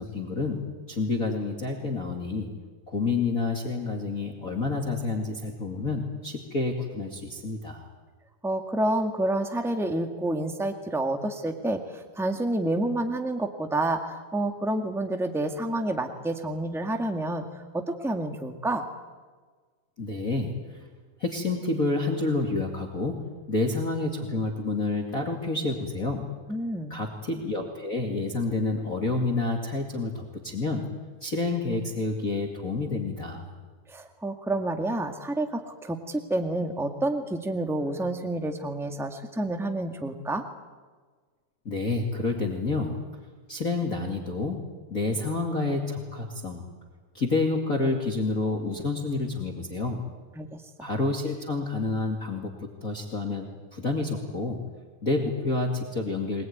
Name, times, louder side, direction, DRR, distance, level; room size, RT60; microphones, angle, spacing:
voice 1, 0.0-2.5 2.9-7.9 20.0-20.8 21.2-26.3 26.9-33.5 41.6-43.1 43.5-44.6 44.9-46.6 47.1-50.1 50.8-52.5 52.8-54.6 55.0-56.4, left 3 dB, 30° left, 2 dB, 2.3 m, -29 dB
voice 2, 8.4-17.4 17.7-18.9 26.5-26.9 33.9-40.4 50.3-50.5 50.8-50.9, right 1 dB, ahead, 5 dB, 0.7 m, -29 dB
23.5 x 20.5 x 9.6 m, 1.5 s
omnidirectional pair, 3.7 m